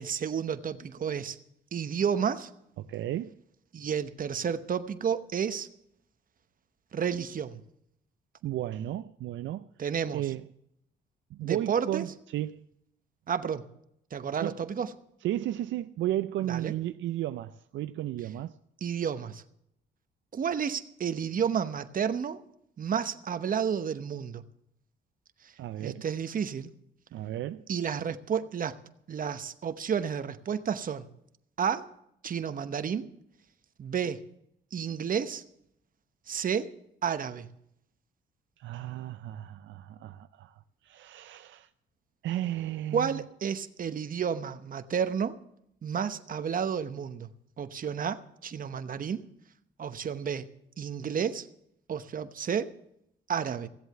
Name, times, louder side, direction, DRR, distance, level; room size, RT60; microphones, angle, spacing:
voice 1, 0.0-1.4 1.7-2.5 3.7-5.7 6.9-7.6 9.8-10.2 11.4-12.1 13.3-13.6 14.1-14.9 16.5-16.7 18.8-19.4 20.3-22.4 22.8-24.4 25.8-26.7 27.7-28.8 29.1-31.1 31.6-31.9 32.2-33.1 33.8-34.2 34.7-35.4 36.3-36.7 37.0-37.5 42.9-45.4 45.8-47.3 47.6-49.2 49.8-50.5 50.8-51.5 51.9-52.7 53.3-53.7, right 7 dB, 45° right, 0.9 m, -31 dB
voice 2, 2.8-3.4 8.4-9.7 10.1-10.4 11.3-12.6 14.4-14.6 15.2-18.5 25.6-26.0 27.1-27.7 38.6-41.7 42.2-43.2, right 13 dB, 70° right, 0.5 m, -34 dB
16.0 x 7.9 x 7.8 m
cardioid pair, 90°, 20 cm